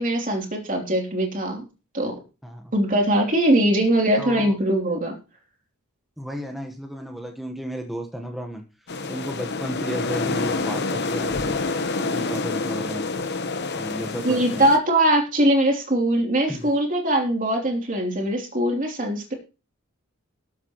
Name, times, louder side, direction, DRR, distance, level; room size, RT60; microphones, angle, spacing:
voice 1, 0.0-1.7 1.9-2.1 2.7-5.1 14.2-19.3, right 1 dB, 40° right, 2 dB, 3.2 m, -21 dB
voice 2, 2.4-2.7 4.2-4.5 6.2-11.6 12.0-13.1 13.7-14.6 16.5-16.7, equal, ahead, 3 dB, 1.2 m, -33 dB
sound 1, 8.9-14.8, left 3 dB, 50° left, 1.1 m, -27 dB
19.5 x 8.2 x 3.1 m, 0.32 s
head